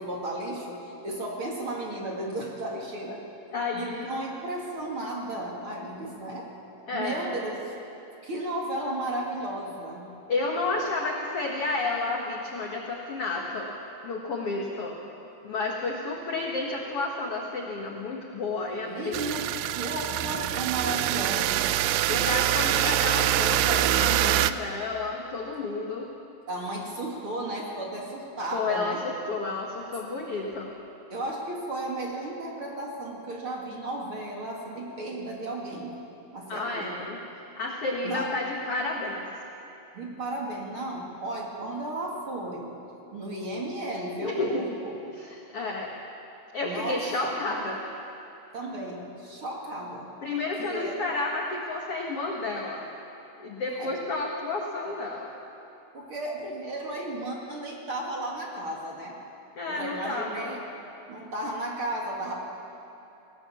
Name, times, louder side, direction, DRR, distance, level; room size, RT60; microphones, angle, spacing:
voice 1, 0.0-3.2 3.7-6.5 6.9-7.6 8.2-10.1 18.8-21.7 22.1-22.9 26.5-29.0 31.1-35.9 36.3-37.1 38.0-38.3 39.9-42.7 43.1-44.9 46.6-47.3 48.5-50.1 50.6-50.9 53.7-53.9 55.9-59.1 59.7-60.6 61.1-62.4, right 1 dB, 40° right, -2 dB, 2.5 m, -34 dB
voice 2, 3.5-4.1 6.9-7.4 10.3-13.7 14.0-15.0 15.4-19.2 22.0-26.1 28.5-30.7 36.5-37.2 37.5-39.2 44.2-44.7 45.1-45.9 46.5-47.8 50.2-52.9 53.4-55.3 59.6-60.5, left 3 dB, 60° left, -1 dB, 1.6 m, -31 dB
sound 1, 19.1-24.5, right 14 dB, 85° right, 2.7 m, -25 dB
19.5 x 18.5 x 7.2 m, 2.8 s
omnidirectional pair, 4.7 m